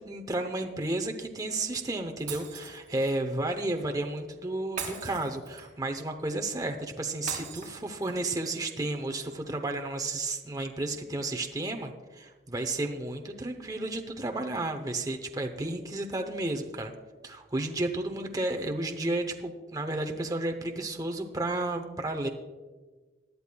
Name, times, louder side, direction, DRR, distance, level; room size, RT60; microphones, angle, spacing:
voice 1, 0.1-16.9 17.2-22.3, right 2 dB, 20° right, 4 dB, 0.7 m, -32 dB
Shatter, 2.3-3.2 4.8-5.9 7.3-8.3, right 6 dB, 40° right, 3.1 m, -40 dB
20.5 x 11.0 x 2.3 m, 1.3 s
head